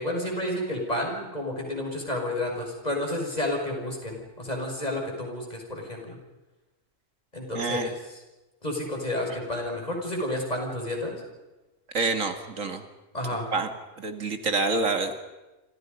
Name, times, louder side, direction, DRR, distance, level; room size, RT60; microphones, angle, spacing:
voice 1, 0.0-6.2 7.3-8.2 8.6-11.2 13.1-13.5, left 1 dB, 30° left, 1 dB, 6.3 m, -31 dB
voice 2, 7.5-7.9 11.9-12.8 13.5-13.7 14.0-15.2, right 3 dB, 75° right, 7 dB, 2.4 m, -27 dB
27.5 x 27.0 x 5.4 m, 1.1 s
omnidirectional pair, 1.4 m